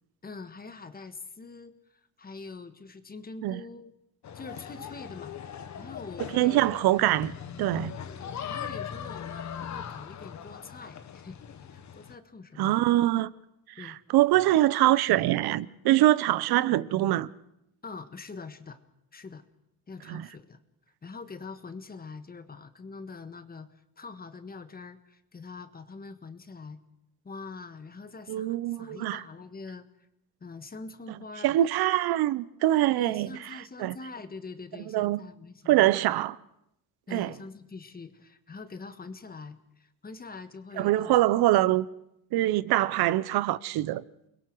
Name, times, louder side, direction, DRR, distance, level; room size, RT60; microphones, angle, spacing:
voice 1, 0.2-3.9 4.3-5.4 5.7-6.7 8.0-11.4 11.7-12.8 13.8-14.0 17.8-18.8 19.1-19.4 19.9-20.6 21.0-26.8 27.2-30.1 30.4-31.6 33.0-36.0 37.1-41.5, left 4 dB, 25° left, 1.4 m, -44 dB
sound 1, 4.2-12.2, left 8 dB, 45° left, 1.3 m, -40 dB
voice 2, 6.3-7.9 12.6-13.3 13.8-17.3 20.1-20.3 28.3-29.2 31.4-33.3 33.8-33.9 34.9-35.2 35.7-36.4 37.1-37.3 40.8-41.9 42.3-44.0, right 15 dB, 75° right, 0.9 m, -24 dB
29.5 x 21.5 x 4.7 m
cardioid pair, 115°, 38 cm